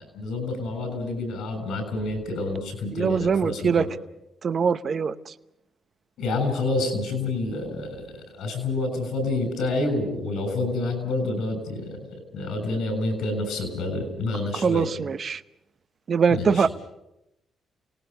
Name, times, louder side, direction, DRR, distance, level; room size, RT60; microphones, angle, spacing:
voice 1, 0.1-3.9 6.2-8.1 8.4-12.1 12.3-14.9 16.3-16.7, left 2 dB, 80° left, 8 dB, 7.1 m, -28 dB
voice 2, 2.9-3.9 4.4-5.3 14.6-15.4 16.1-16.7, right 6 dB, 50° right, 12 dB, 0.8 m, -22 dB
29.0 x 18.5 x 6.8 m, 0.89 s
supercardioid pair, 65°, 0 cm